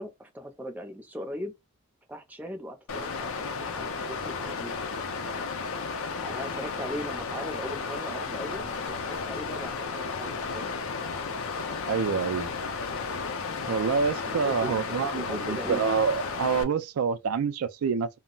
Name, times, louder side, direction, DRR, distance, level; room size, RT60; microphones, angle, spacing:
voice 1, 0.0-1.5 2.1-4.9 6.2-8.8 9.0-10.7 14.3-15.9, equal, 10° right, 0.5 m, -39 dB
Water, 2.9-16.6, left 4 dB, 70° left, 0.5 m, -33 dB
voice 2, 11.9-12.5 13.7-18.1, right 6 dB, 80° right, 0.4 m, -27 dB
2.2 x 2.0 x 3.7 m
head